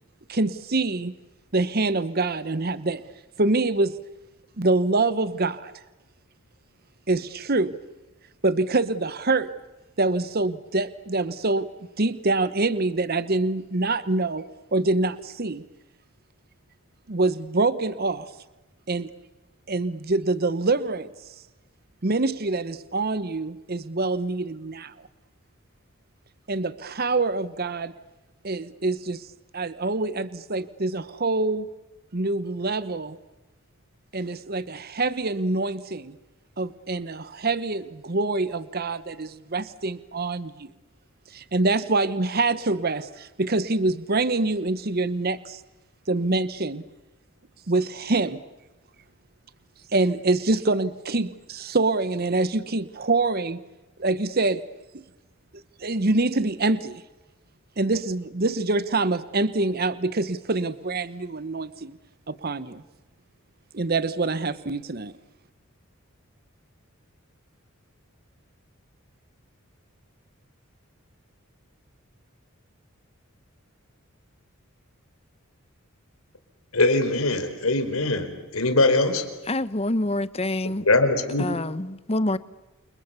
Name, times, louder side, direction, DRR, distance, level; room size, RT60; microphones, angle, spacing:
voice 1, 0.3-1.1 1.5-3.0 3.4-4.0 4.6-5.8 7.1-7.8 8.4-9.5 10.0-11.7 12.0-15.6 17.1-18.3 18.9-19.1 19.7-21.1 22.0-24.9 26.5-27.9 28.4-29.3 29.5-31.7 32.1-33.2 34.1-36.2 36.6-40.7 41.3-45.6 46.1-46.8 47.7-48.4 49.9-53.6 54.0-54.6 55.8-57.0 57.8-61.9 62.3-62.8 63.7-65.1, right 2 dB, 45° right, 1.0 m, -25 dB
voice 2, 76.7-79.3 80.7-81.5, left 2 dB, 90° left, 4.4 m, -22 dB
voice 3, 79.5-80.8 81.4-82.4, left 1 dB, 30° left, 1.0 m, -26 dB
29.5 x 28.0 x 7.0 m
head